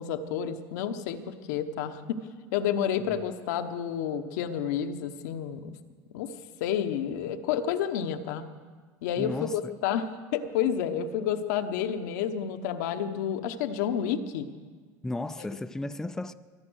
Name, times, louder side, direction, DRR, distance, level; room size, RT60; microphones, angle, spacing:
voice 1, 0.0-2.2 2.5-5.8 6.1-6.3 6.6-8.4 9.0-14.5 15.4-15.5, left 9 dB, 80° left, 1.0 m, -30 dB
voice 2, 9.2-9.7 15.0-16.3, left 2 dB, 5° left, 0.5 m, -34 dB
23.0 x 8.8 x 6.3 m
supercardioid pair, 110°, 9 cm